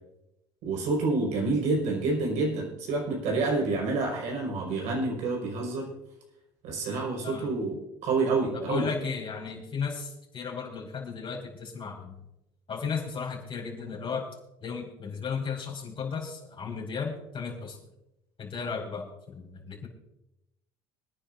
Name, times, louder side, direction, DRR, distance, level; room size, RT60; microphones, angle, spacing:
voice 1, 0.6-5.9 6.6-8.9, right 3 dB, 60° right, 0 dB, 5.0 m, -28 dB
voice 2, 8.5-12.2 12.7-14.3 14.6-17.8 18.4-19.9, left 5 dB, 40° left, -1 dB, 5.3 m, -35 dB
26.0 x 10.0 x 2.6 m, 0.89 s
hypercardioid pair, 70°, 14 cm